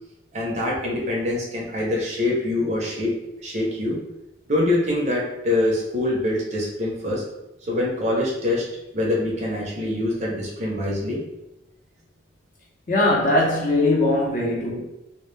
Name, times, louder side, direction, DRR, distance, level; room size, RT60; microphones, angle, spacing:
voice 1, 0.3-3.1 3.4-4.0 4.5-7.2 7.7-8.6 8.9-11.2, left 1 dB, 35° right, 0.5 m, -24 dB
voice 2, 12.9-14.8, left 2 dB, 45° left, 0.6 m, -20 dB
2.1 x 2.1 x 3.1 m
head